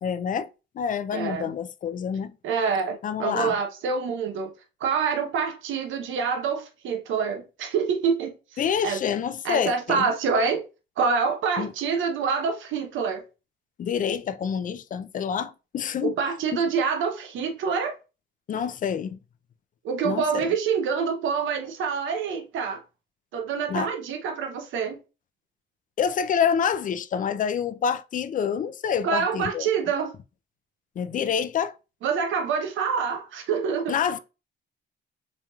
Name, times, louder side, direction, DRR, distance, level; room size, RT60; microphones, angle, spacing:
voice 1, 0.0-0.5 0.8-2.3 3.0-3.5 8.6-10.1 11.6-11.7 13.8-16.2 18.5-19.2 20.0-20.5 23.7-23.9 26.0-29.7 31.0-31.7 33.9-34.2, left 7 dB, 40° left, 0.4 m, -27 dB
voice 2, 1.1-1.5 2.4-4.5 4.8-9.0 9.4-10.6 11.0-13.2 16.0-17.9 19.8-22.8 23.3-25.0 29.0-30.1 32.0-34.0, right 6 dB, 80° right, 0.8 m, -26 dB
4.9 x 2.9 x 2.3 m
cardioid pair, 90°, 20 cm